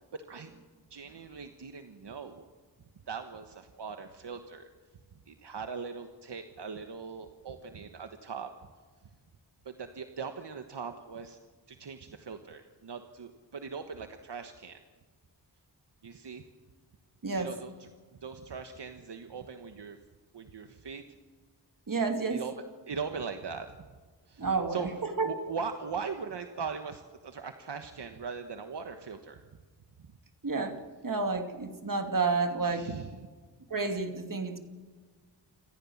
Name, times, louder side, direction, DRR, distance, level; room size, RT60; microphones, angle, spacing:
voice 1, 0.1-0.5 0.9-2.5 3.1-4.7 5.3-8.5 9.6-11.4 11.7-14.8 16.0-16.4 17.4-17.9 18.2-20.0 20.3-21.1 22.3-22.5 22.9-23.8 24.3-24.9 25.2-29.4 32.7-33.1, right 5 dB, 75° right, 6 dB, 1.4 m, -40 dB
voice 2, 17.2-17.5 21.9-22.4 24.4-25.3 30.4-30.8 31.0-32.9 33.7-34.6, right 4 dB, 50° right, 5 dB, 2.7 m, -30 dB
27.5 x 15.0 x 7.3 m, 1.4 s
wide cardioid pair, 70°, 42 cm